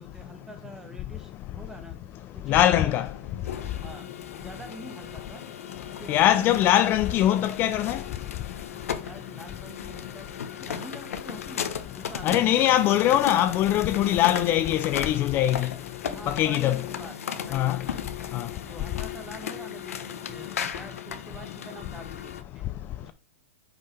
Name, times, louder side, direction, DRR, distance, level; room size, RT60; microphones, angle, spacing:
voice 1, 0.0-2.0 2.3-3.0 3.8-4.1 4.4-5.5 5.9-6.7 9.0-10.3 10.6-12.8 13.3-13.7 16.1-17.2 17.4-18.0 18.7-22.6 23.0-23.1, right 1 dB, 5° right, 1.3 m, -45 dB
voice 2, 2.5-3.1 6.1-8.0 12.2-15.7 16.3-16.8 17.5-17.8 18.3-18.5, left 12 dB, 30° left, 0.4 m, -22 dB
sound 1, 2.9-22.4, left 8 dB, 85° left, 0.9 m, -36 dB
5.4 x 3.8 x 5.9 m
hypercardioid pair, 140°, 7 cm